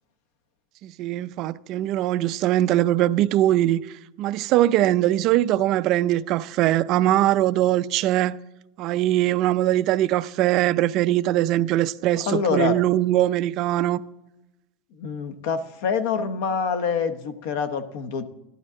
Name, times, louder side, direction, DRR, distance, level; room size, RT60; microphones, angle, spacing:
voice 1, 0.8-8.4 8.8-14.0, right 14 dB, 35° right, 0.3 m, -21 dB
voice 2, 12.3-12.8 15.0-18.2, left 6 dB, 55° left, 0.9 m, -26 dB
12.0 x 12.0 x 3.7 m
supercardioid pair, 180°, 0 cm